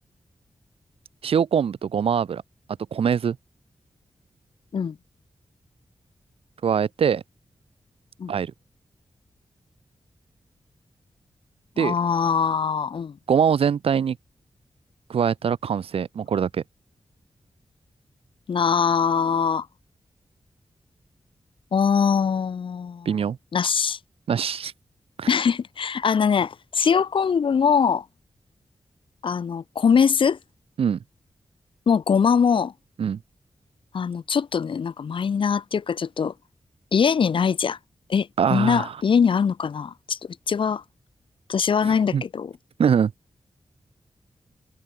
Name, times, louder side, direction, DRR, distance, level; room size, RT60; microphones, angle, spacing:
voice 1, 1.2-2.4 2.9-3.4 6.6-7.2 8.3-8.5 11.8-11.9 13.3-14.2 15.1-16.6 23.1-23.4 24.3-24.7 25.2-25.3 30.8-31.0 33.0-33.2 38.4-38.9 41.8-42.2 42.8-43.1, right 7 dB, 85° right, 0.8 m, -23 dB
voice 2, 11.8-13.2 18.5-19.7 21.7-23.1 23.5-24.0 25.3-28.0 29.2-30.4 31.9-32.7 33.9-36.3 36.9-37.8 38.1-40.2 40.5-40.8 41.5-42.5, left 6 dB, 65° left, 0.9 m, -22 dB
wide cardioid pair, 165°, 10 cm